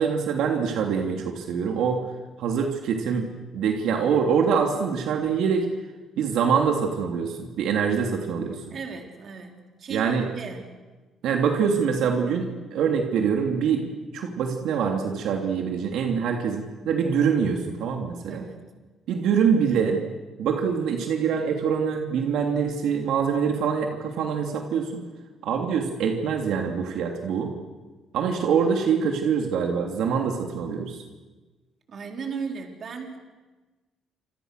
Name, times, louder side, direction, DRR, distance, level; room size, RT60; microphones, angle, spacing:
voice 1, 0.0-2.0 2.4-3.3 3.5-5.7 6.2-8.6 9.9-10.2 11.2-18.4 19.1-20.0 20.4-25.0 25.4-27.5 28.1-31.0, right 6 dB, 75° right, 3 dB, 3.0 m, -24 dB
voice 2, 8.7-10.8 18.3-18.7 31.9-33.2, right 5 dB, 40° right, 3 dB, 4.1 m, -36 dB
28.0 x 27.5 x 6.7 m, 1.2 s
cardioid pair, 140°, 0 cm